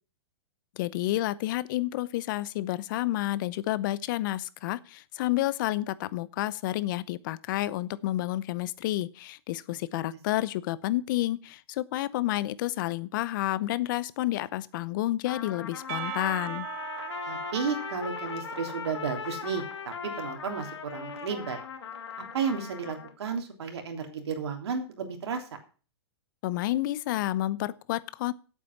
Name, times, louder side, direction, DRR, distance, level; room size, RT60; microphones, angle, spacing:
voice 1, 0.8-16.7 26.4-28.3, left 15 dB, 50° left, 0.7 m, -30 dB
Trumpet, 15.2-23.1, left 7 dB, 85° left, 1.9 m, -39 dB
Percussion / Church bell, 15.9-20.9, right 13 dB, 40° right, 1.7 m, -41 dB
voice 2, 17.3-21.6 22.3-25.4, right 5 dB, 75° right, 3.2 m, -33 dB
8.4 x 8.2 x 7.3 m
hypercardioid pair, 140°, 14 cm